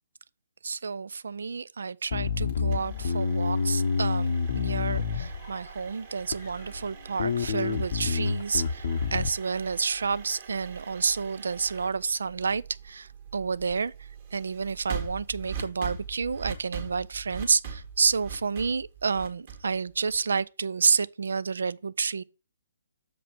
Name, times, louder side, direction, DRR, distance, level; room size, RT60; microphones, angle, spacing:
voice 1, 0.6-13.9 14.3-22.2, right 5 dB, 60° right, 0.4 m, -29 dB
Bass guitar, 2.1-5.7 6.3-6.9 7.2-9.3, left 5 dB, 50° left, 0.7 m, -28 dB
sound 1, 2.5-20.4, right 6 dB, 40° right, 2.0 m, -42 dB
6.9 x 5.0 x 5.9 m
figure-of-eight pair, 130°, 0 cm